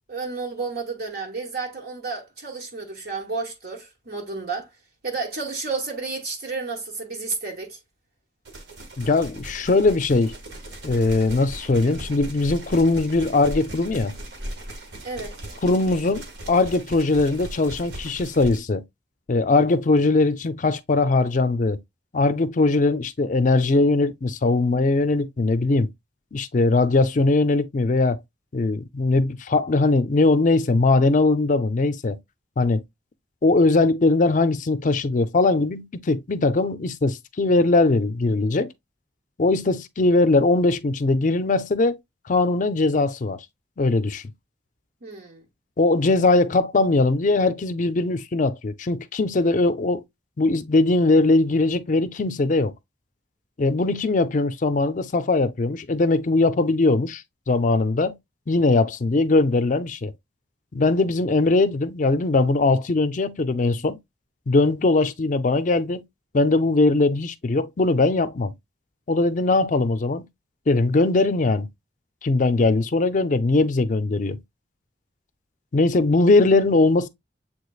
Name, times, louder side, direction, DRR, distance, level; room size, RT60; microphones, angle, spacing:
voice 1, 0.1-4.7 5.0-7.8 15.0-15.4 45.0-45.4, right 4 dB, 55° right, 1.1 m, -31 dB
sound 1, 8.4-18.6, right 1 dB, 70° right, 1.4 m, -38 dB
voice 2, 9.0-10.3 10.8-14.1 15.6-18.8 19.3-21.8 22.1-25.9 26.3-28.2 28.5-32.2 32.6-32.8 33.4-38.7 39.4-42.0 42.3-43.4 43.8-44.2 45.8-50.0 50.4-52.7 53.6-58.1 58.5-60.1 60.7-64.0 64.5-66.0 66.3-68.5 69.1-70.3 70.7-71.7 72.2-74.4 75.7-77.1, left 3 dB, 45° left, 0.5 m, -20 dB
7.3 x 3.2 x 2.3 m
head